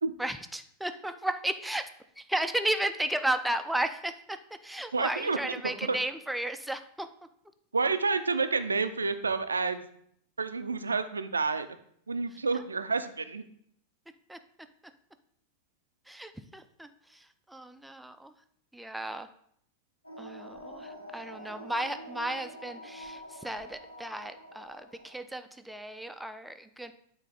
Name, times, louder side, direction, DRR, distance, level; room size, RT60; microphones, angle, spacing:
voice 1, 0.2-7.1 14.3-14.7 16.1-18.3 18.7-19.3 20.2-26.9, right 1 dB, 5° right, 9 dB, 0.4 m, -34 dB
voice 2, 4.9-5.4 5.6-6.0 7.7-9.9 10.4-11.7 12.1-13.4, right 4 dB, 75° right, 10 dB, 0.5 m, -29 dB
sound 1, 20.0-25.2, equal, 85° left, 1.1 m, -46 dB
9.0 x 4.0 x 3.9 m, 0.67 s
figure-of-eight pair, 90°, 0 cm